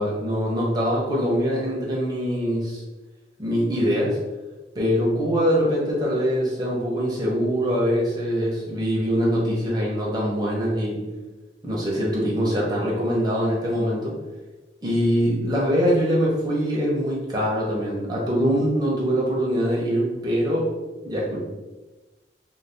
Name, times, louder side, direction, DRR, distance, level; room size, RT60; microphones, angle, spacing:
voice 1, 0.0-2.8 3.4-4.2 4.7-11.0 11.6-14.1 14.8-20.7 21.0-21.4, equal, 25° right, -5 dB, 0.7 m, -23 dB
2.6 x 2.2 x 3.3 m, 1.2 s
head